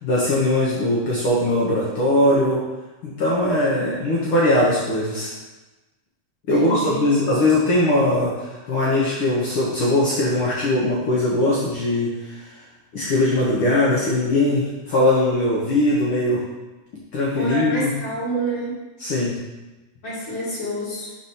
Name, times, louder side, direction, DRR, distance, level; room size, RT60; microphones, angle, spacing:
voice 1, 0.0-2.6 3.0-5.3 6.5-12.6 12.9-16.4 17.1-17.9 19.0-19.4, left 1 dB, 65° left, -5 dB, 1.3 m, -20 dB
voice 2, 6.5-7.2 17.4-18.8 20.0-21.1, right 1 dB, 30° left, -9 dB, 1.7 m, -28 dB
4.8 x 4.2 x 5.5 m, 1.1 s
omnidirectional pair, 3.5 m